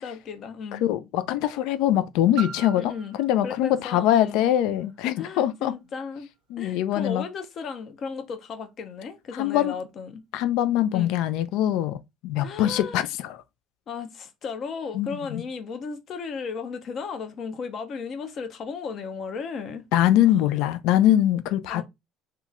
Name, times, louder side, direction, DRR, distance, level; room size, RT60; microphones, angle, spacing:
voice 1, 0.0-0.8 2.8-3.1 3.4-4.5 5.2-6.3 6.6-10.2 10.9-11.1 12.4-13.0 13.9-19.8 21.7-21.8, left 5 dB, 50° left, 0.7 m, -35 dB
voice 2, 0.8-2.9 3.2-5.7 6.5-7.2 9.4-9.7 10.3-13.4 14.9-15.4 19.9-21.8, left 12 dB, 80° left, 0.4 m, -23 dB
Piano, 2.4-7.8 8.5-8.6, right 8 dB, 75° right, 0.5 m, -44 dB
3.0 x 2.2 x 3.5 m
supercardioid pair, 95°, 0 cm